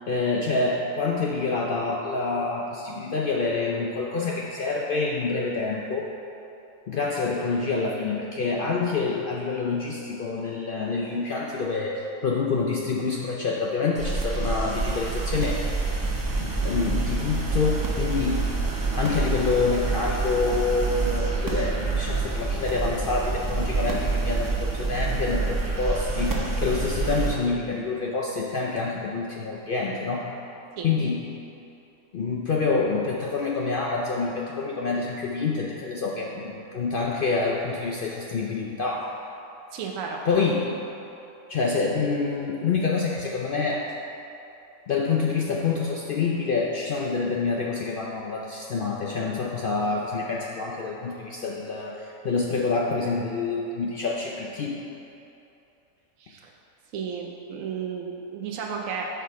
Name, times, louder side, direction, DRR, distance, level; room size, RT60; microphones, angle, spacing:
voice 1, 0.1-6.1 6.9-15.6 16.4-18.5 18.9-30.3 30.8-31.2 32.1-39.1 40.2-40.7 41.5-43.9 44.9-54.8, left 4 dB, 70° left, -2 dB, 0.5 m, -27 dB
sound 1, 14.0-27.3, right 3 dB, 30° right, 0.3 m, -27 dB
voice 2, 39.7-40.2 56.2-56.5 56.9-59.1, right 6 dB, 70° right, 0 dB, 1.0 m, -33 dB
5.9 x 5.8 x 4.7 m, 2.8 s
omnidirectional pair, 1.5 m